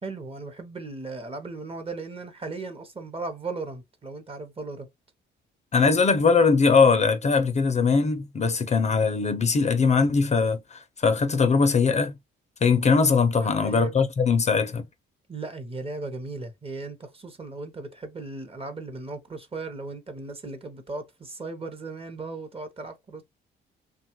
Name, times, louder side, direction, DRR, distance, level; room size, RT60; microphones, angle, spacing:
voice 1, 0.0-4.9 13.4-13.9 15.3-23.2, right 3 dB, 30° right, 0.8 m, -37 dB
voice 2, 5.7-12.1 12.6-14.9, left 5 dB, 35° left, 0.5 m, -21 dB
2.8 x 2.3 x 2.9 m
cardioid pair, 90°, 20 cm